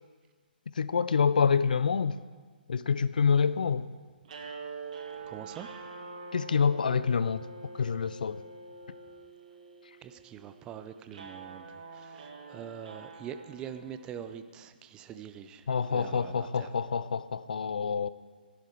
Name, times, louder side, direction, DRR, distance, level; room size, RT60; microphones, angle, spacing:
voice 1, 0.8-2.2 2.7-3.9 6.3-7.4 7.8-8.4 15.7-18.1, left 6 dB, 55° left, 0.4 m, -27 dB
sound 1, 4.2-14.5, right 3 dB, 45° right, 1.5 m, -46 dB
voice 2, 5.3-5.7 10.0-16.7, right 8 dB, 15° right, 0.5 m, -44 dB
14.0 x 11.0 x 4.7 m
figure-of-eight pair, 130°, 5 cm